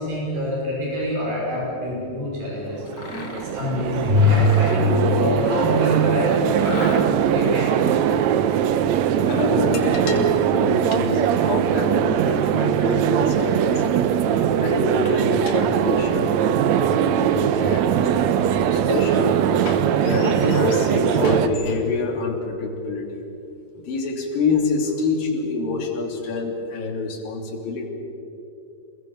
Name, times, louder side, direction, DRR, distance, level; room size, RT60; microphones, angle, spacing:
voice 1, 0.0-6.9 7.3-7.9, left 1 dB, 90° right, -4 dB, 7.4 m, -23 dB
sound 1, 2.7-21.5, right 9 dB, 70° right, 1.8 m, -21 dB
Mechanisms, 2.9-3.6 4.1-6.0 6.5-7.4, left 4 dB, 40° left, 2.0 m, -36 dB
voice 2, 9.3-13.8 14.5-23.2 23.8-27.9, left 4 dB, 75° left, 1 dB, 4.8 m, -27 dB
26.5 x 21.5 x 7.1 m, 2.8 s
omnidirectional pair, 4.0 m